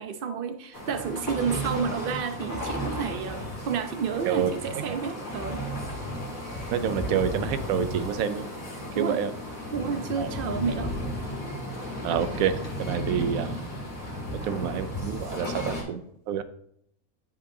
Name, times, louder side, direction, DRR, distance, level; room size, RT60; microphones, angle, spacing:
voice 1, 0.0-5.6 8.9-9.2 9.7-10.9, right 6 dB, 50° right, 8 dB, 0.7 m, -30 dB
sound 1, 0.7-15.8, equal, 35° left, 2.0 m, -34 dB
voice 2, 4.2-5.0 6.7-8.5 9.0-9.3 10.2-10.3 12.0-12.5 12.8-13.6 14.4-16.4, right 8 dB, 75° right, 12 dB, 1.0 m, -28 dB
9.4 x 5.0 x 2.7 m, 0.70 s
omnidirectional pair, 1.5 m